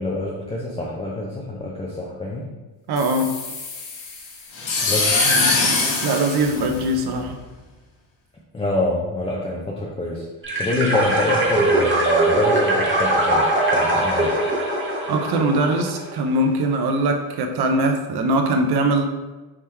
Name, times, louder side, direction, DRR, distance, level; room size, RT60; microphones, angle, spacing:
voice 1, 0.0-2.5 4.8-5.2 8.5-10.3 10.6-13.5 13.7-14.3, left 2 dB, 15° left, -5 dB, 0.6 m, -26 dB
voice 2, 2.9-3.3 5.2-7.4 15.1-19.0, right 1 dB, 55° right, 4 dB, 0.7 m, -22 dB
sound 1, 3.0-7.3, left 3 dB, 65° left, 1.1 m, -23 dB
sound 2, 10.4-16.2, right 1 dB, 25° right, 1.0 m, -21 dB
3.7 x 2.9 x 3.3 m, 1.2 s
cardioid pair, 85°, 48 cm